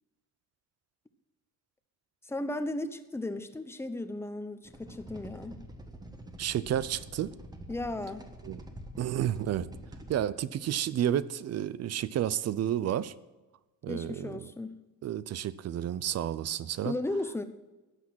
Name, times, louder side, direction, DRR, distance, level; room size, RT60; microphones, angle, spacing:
voice 1, 2.2-5.6 7.7-8.3 13.9-14.8 16.8-17.4, left 2 dB, 5° left, 10 dB, 0.9 m, -35 dB
sound 1, 4.6-10.2, equal, 10° right, 1.4 m, -47 dB
voice 2, 6.4-7.3 8.5-8.6 9.0-9.7 10.1-13.1 13.8-14.4 15.0-16.9, right 11 dB, 50° right, 17 dB, 0.6 m, -31 dB
14.5 x 9.9 x 6.2 m, 1.1 s
cardioid pair, 145°, 33 cm